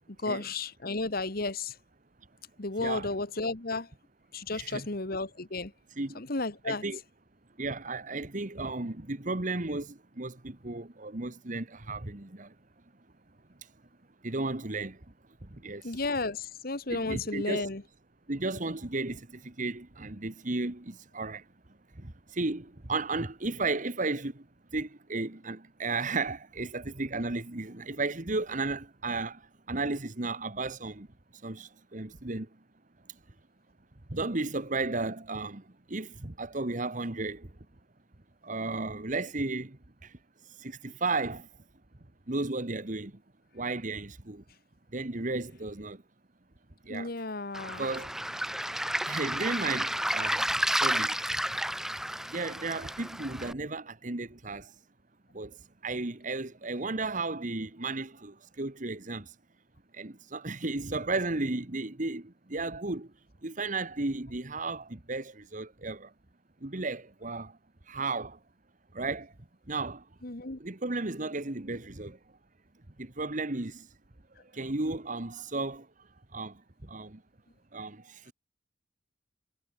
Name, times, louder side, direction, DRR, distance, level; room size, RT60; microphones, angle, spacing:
voice 1, 0.2-1.8 2.6-3.9 4.3-5.7 6.2-6.8 15.8-17.8 46.9-47.8 70.2-70.6, left 3 dB, 55° left, 1.8 m, -33 dB
voice 2, 2.8-3.1 4.5-4.9 6.0-6.2 6.6-7.0 7.6-12.5 13.6-13.7 14.2-15.0 15.4-16.0 16.9-17.7 18.3-21.5 21.9-24.5 24.7-31.1 31.3-32.5 34.1-37.5 38.4-40.2 40.4-41.5 42.3-43.2 43.5-44.4 44.9-46.0 46.8-47.1 47.7-48.2 49.1-50.4 50.8-51.2 52.3-54.7 55.3-59.3 59.9-63.1 63.4-66.1 66.6-67.6 67.9-68.4 68.9-69.3 69.7-70.1 70.6-72.2 73.0-73.9 74.4-77.2 77.7-78.3, right 3 dB, 45° right, 1.6 m, -34 dB
Waves surf, 47.5-53.5, equal, 5° right, 1.5 m, -31 dB
head